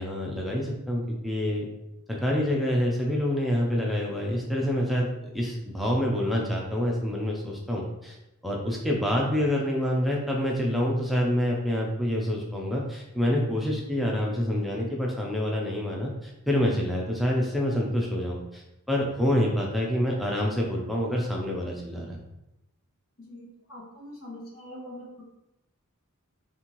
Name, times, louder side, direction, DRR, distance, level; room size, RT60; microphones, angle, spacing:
voice 1, 0.0-1.7 2.1-8.2 8.4-22.2, equal, ahead, -2 dB, 0.5 m, -27 dB
voice 2, 23.3-25.2, left 1 dB, 70° left, -4 dB, 1.5 m, -43 dB
4.2 x 3.5 x 3.0 m, 0.90 s
head